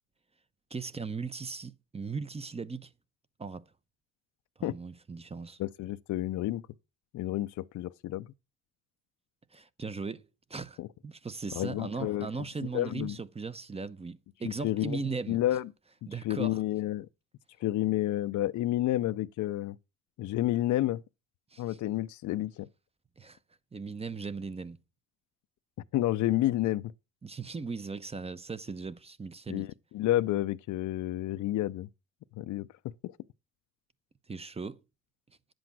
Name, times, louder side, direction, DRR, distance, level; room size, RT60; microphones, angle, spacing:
voice 1, 0.7-2.9 3.4-3.6 4.6-5.6 9.5-10.2 10.5-10.8 11.0-15.4 16.1-16.6 21.5-21.8 23.2-23.4 23.7-24.8 27.2-29.7 34.3-34.8, right 4 dB, 20° right, 0.8 m, -38 dB
voice 2, 5.6-6.6 7.1-8.3 10.8-10.9 11.5-12.3 12.7-13.2 14.4-15.0 15.3-15.7 16.2-17.1 17.6-19.8 20.2-21.0 21.6-22.7 25.9-26.8 29.5-29.7 29.9-31.9 32.4-32.7 33.0-33.1, left 14 dB, 75° left, 0.6 m, -30 dB
10.5 x 7.8 x 6.1 m
cardioid pair, 90°, 30 cm